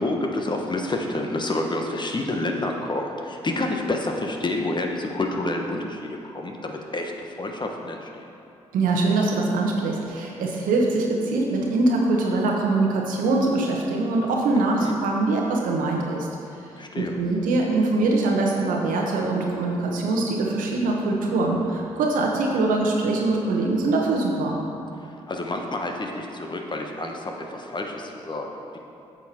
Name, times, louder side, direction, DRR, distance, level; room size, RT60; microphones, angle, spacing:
voice 1, 0.0-8.3 14.6-15.0 16.8-17.2 25.0-28.8, left 2 dB, 30° left, 2 dB, 1.2 m, -29 dB
voice 2, 8.7-16.3 17.0-24.6, right 2 dB, 70° right, 0 dB, 1.2 m, -23 dB
8.4 x 6.5 x 4.4 m, 2.7 s
hypercardioid pair, 45°, 15 cm